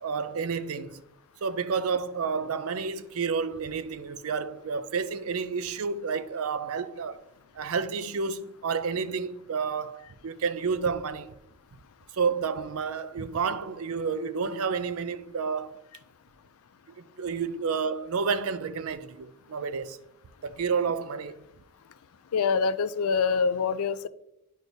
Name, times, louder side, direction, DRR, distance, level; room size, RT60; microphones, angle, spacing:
voice 1, 0.0-1.0 1.4-7.2 7.6-11.3 12.1-15.8 17.2-20.0 20.4-21.4, right 5 dB, 75° right, 0.5 m, -30 dB
voice 2, 22.3-24.1, left 5 dB, 80° left, 0.4 m, -25 dB
10.5 x 4.5 x 2.7 m
head